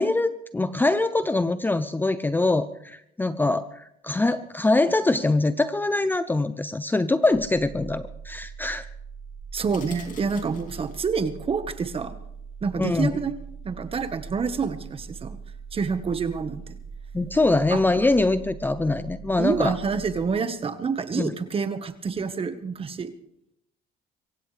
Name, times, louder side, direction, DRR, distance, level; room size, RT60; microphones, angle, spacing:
voice 1, 0.0-8.9 12.8-13.1 17.1-19.7 21.2-21.3, left 2 dB, 10° left, 12 dB, 0.6 m, -23 dB
sound 1, 7.3-20.3, right 6 dB, 10° right, 4.0 m, -41 dB
voice 2, 9.5-12.2 12.6-13.3 13.6-15.4 15.7-16.8 17.7-17.8 19.4-23.1, right 5 dB, 35° right, 10 dB, 1.5 m, -27 dB
sound 2, 9.7-11.2, left 6 dB, 50° left, 2.5 m, -48 dB
24.5 x 16.0 x 3.4 m, 0.77 s
cardioid pair, 110°, 17 cm